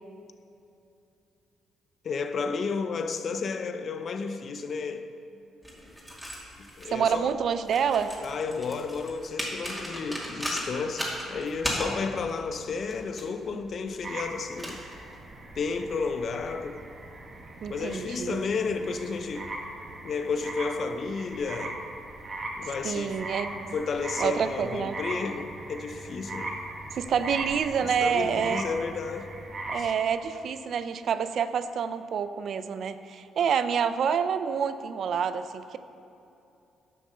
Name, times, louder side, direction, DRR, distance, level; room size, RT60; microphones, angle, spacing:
voice 1, 2.0-5.1 6.6-7.3 8.2-14.8 15.6-16.8 17.7-19.5 20.0-21.8 22.6-23.2 23.7-26.5 27.8-29.3 29.8-29.9, left 4 dB, 55° left, 0.6 m, -32 dB
sound 1, 5.6-15.4, equal, 5° right, 2.4 m, -38 dB
voice 2, 6.9-8.1 17.6-18.5 22.8-23.6 24.2-25.0 26.9-28.7 29.7-35.8, right 7 dB, 60° right, 0.5 m, -28 dB
sound 2, 14.0-29.9, right 2 dB, 40° right, 1.5 m, -39 dB
10.5 x 6.1 x 6.6 m
cardioid pair, 90°, 0 cm